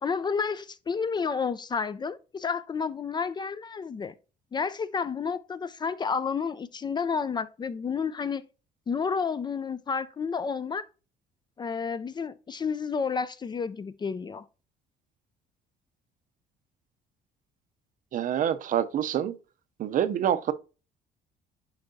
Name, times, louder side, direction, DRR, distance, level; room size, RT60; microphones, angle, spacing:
voice 1, 0.0-4.1 4.5-8.4 8.9-10.8 11.6-14.4, left 5 dB, 25° left, 0.4 m, -30 dB
voice 2, 18.1-19.3 19.8-20.5, right 10 dB, 50° right, 0.6 m, -26 dB
10.5 x 4.5 x 2.7 m
cardioid pair, 110°, 17 cm